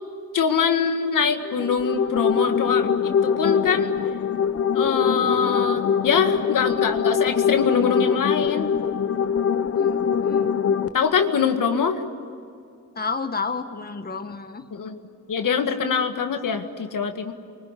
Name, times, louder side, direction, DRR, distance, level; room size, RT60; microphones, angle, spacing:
voice 1, 0.3-3.0 3.2-4.0 4.7-8.7 10.9-12.0 14.7-15.0 15.3-17.3, left 6 dB, 85° left, 6 dB, 1.9 m, -23 dB
sound 1, 1.4-10.9, left 7 dB, 50° left, 1.0 m, -23 dB
voice 2, 9.8-10.5 12.9-14.7, left 4 dB, 30° left, 7 dB, 1.4 m, -31 dB
29.5 x 24.5 x 8.3 m, 2.4 s
wide cardioid pair, 130°, 31 cm